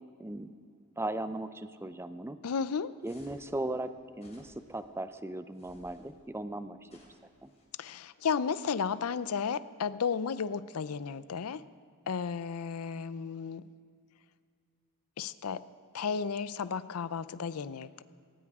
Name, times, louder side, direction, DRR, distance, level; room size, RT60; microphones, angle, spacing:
voice 1, 0.2-0.5 1.0-2.4 3.0-6.9 7.4-7.5, right 1 dB, 10° right, 11 dB, 0.5 m, -37 dB
voice 2, 2.4-2.9 7.8-11.6 12.1-13.6 15.2-15.6 15.9-18.0, left 6 dB, 85° left, 16 dB, 0.5 m, -33 dB
sound 1, 3.0-3.5 4.1-4.8 5.5-6.1 6.9-7.7, left 1 dB, 30° left, 3.2 m, -60 dB
18.5 x 18.5 x 3.6 m, 2.2 s
head